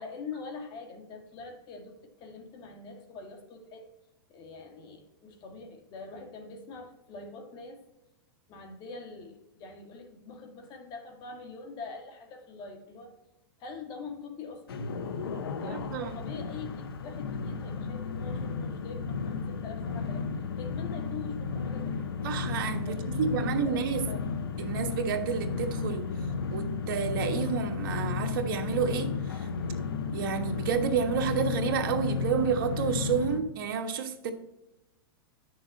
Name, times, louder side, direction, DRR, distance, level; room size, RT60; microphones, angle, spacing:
voice 1, 0.0-3.9 4.3-7.8 8.5-13.1 13.6-14.9 15.6-20.3 20.6-22.0 22.9-24.4, left 4 dB, 35° left, 5 dB, 1.9 m, -44 dB
sound 1, 14.7-33.4, left 5 dB, 85° left, 0.8 m, -33 dB
voice 2, 15.6-16.2 22.2-24.0 24.6-26.1 26.5-29.5 30.1-34.3, right 7 dB, 65° right, 6 dB, 1.3 m, -30 dB
9.3 x 6.5 x 4.0 m, 0.91 s
hypercardioid pair, 135°, 12 cm